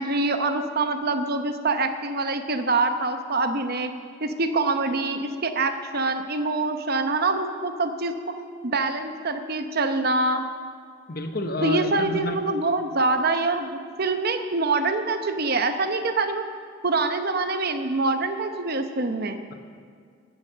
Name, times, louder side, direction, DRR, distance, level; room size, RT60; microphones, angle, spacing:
voice 1, 0.0-3.9 4.2-8.4 8.6-10.5 11.6-16.4 16.8-19.4, right 3 dB, 50° right, 7 dB, 0.9 m, -25 dB
voice 2, 11.1-12.4, left 2 dB, 45° left, 6 dB, 0.9 m, -29 dB
16.0 x 7.3 x 6.7 m, 2.1 s
head